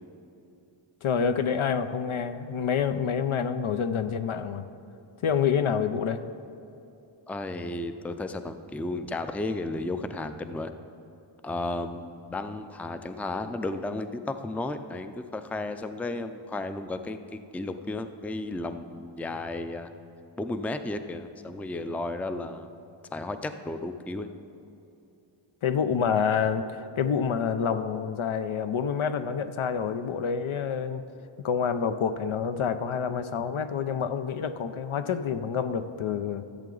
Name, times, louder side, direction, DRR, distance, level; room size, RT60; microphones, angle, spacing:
voice 1, 1.0-4.7 5.2-6.3 25.6-31.0 31.4-36.4, left 7 dB, 75° left, 10 dB, 0.6 m, -27 dB
voice 2, 7.3-10.7 11.4-19.9 20.4-22.7 23.1-24.3, left 2 dB, 5° left, 9 dB, 0.4 m, -33 dB
14.0 x 7.6 x 3.9 m, 2.8 s
wide cardioid pair, 60°, 50 cm